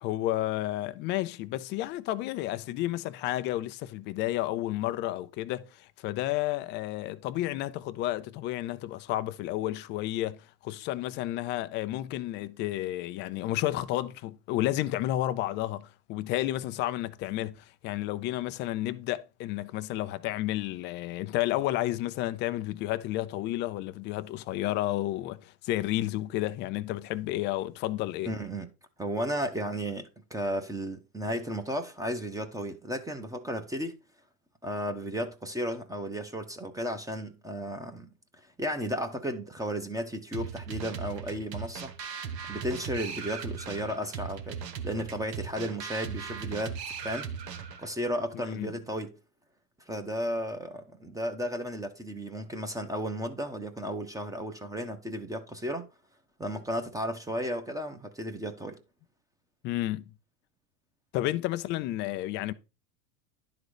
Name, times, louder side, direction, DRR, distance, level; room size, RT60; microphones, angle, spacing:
voice 1, 0.0-10.4 10.6-28.3 48.5-48.8 59.6-60.0 61.1-62.5, left 15 dB, 25° left, 0.3 m, -31 dB
voice 2, 28.2-28.7 29.0-33.9 34.6-38.1 38.6-41.9 42.5-44.6 44.8-46.8 47.0-47.3 47.8-49.1 49.9-55.9 56.4-58.8, equal, 5° right, 0.9 m, -34 dB
sound 1, 40.3-47.9, right 6 dB, 85° right, 1.4 m, -38 dB
11.0 x 3.9 x 4.9 m
supercardioid pair, 120°, 48 cm